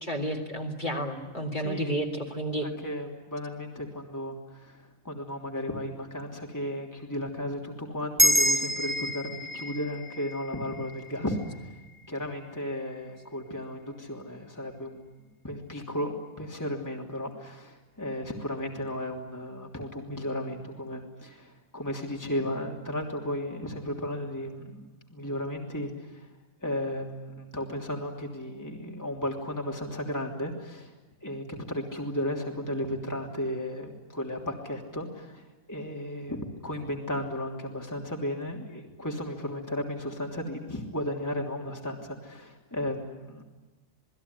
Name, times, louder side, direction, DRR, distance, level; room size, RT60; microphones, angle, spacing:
voice 1, 0.0-2.7 11.3-11.4, right 1 dB, 35° left, 2 dB, 3.4 m, -31 dB
voice 2, 1.6-2.0 2.6-11.4 12.1-26.3 26.6-30.9 31.2-43.4, left 1 dB, 15° left, 0 dB, 3.2 m, -34 dB
sound 1, 8.2-12.9, right 1 dB, 10° right, 2.5 m, -29 dB
28.5 x 20.5 x 9.8 m, 1.1 s
omnidirectional pair, 1.4 m